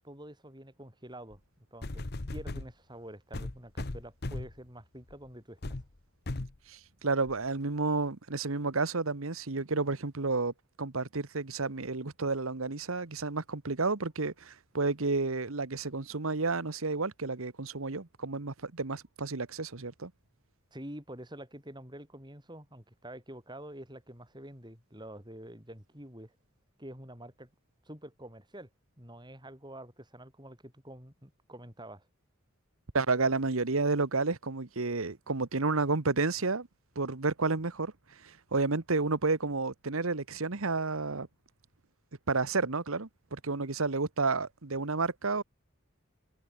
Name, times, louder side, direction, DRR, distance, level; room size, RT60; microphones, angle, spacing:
voice 1, 0.0-5.8 20.7-26.3 26.8-27.5 27.8-28.7 29.0-32.1, right 1 dB, 20° right, 7.9 m, -47 dB
sound 1, 1.3-1.4 1.8-2.7 3.3-4.6 5.1-5.3 5.6-5.9 6.3-6.6 7.3-7.4, left 2 dB, 45° left, 1.1 m, -37 dB
voice 2, 6.7-10.5 10.8-20.1 32.9-36.7 36.9-37.9 38.2-41.3 42.3-45.4, right 3 dB, 70° right, 1.3 m, -31 dB
head